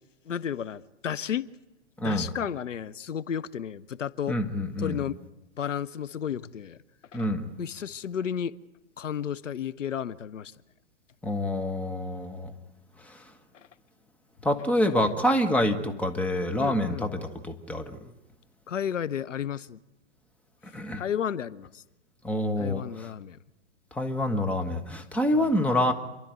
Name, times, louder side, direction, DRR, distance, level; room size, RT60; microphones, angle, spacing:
voice 1, 0.3-1.5 2.0-4.4 4.8-5.2 5.6-6.8 7.1-7.2 7.6-8.5 9.0-10.5 15.8-15.9 16.6-17.0 18.7-19.8 21.0-21.8 22.6-23.4 25.3-25.5, left 8 dB, 85° left, 16 dB, 0.9 m, -32 dB
voice 2, 2.0-2.3 4.3-5.0 7.1-7.5 11.2-12.5 13.0-13.3 14.4-18.1 20.6-21.0 22.2-23.1 23.9-25.9, left 1 dB, 5° left, 5 dB, 1.3 m, -27 dB
28.5 x 12.0 x 9.2 m, 1.0 s
hypercardioid pair, 130°, 36 cm